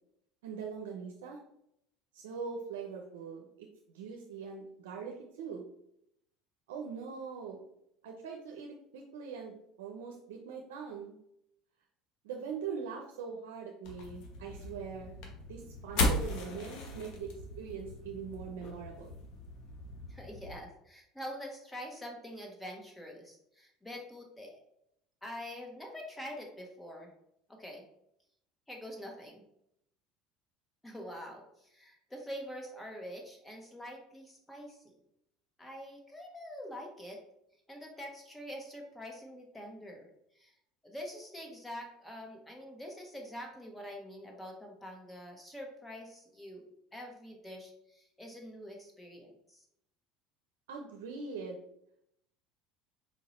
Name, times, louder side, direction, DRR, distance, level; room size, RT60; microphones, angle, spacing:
voice 1, 0.4-1.4 2.1-5.6 6.7-7.6 8.0-11.2 12.2-15.1 15.5-19.1 50.7-51.6, right 5 dB, 85° right, 1 dB, 0.6 m, -42 dB
sound 1, 13.8-20.6, left 2 dB, 65° left, 1.2 m, -37 dB
voice 2, 20.1-24.6 25.2-27.1 27.5-27.8 28.7-29.4 30.8-35.0 35.6-37.2 37.7-40.1 40.3-40.5 40.8-46.6 46.9-49.6, equal, 10° left, 1 dB, 1.4 m, -45 dB
4.5 x 2.8 x 4.1 m, 0.76 s
hypercardioid pair, 85°, 0 cm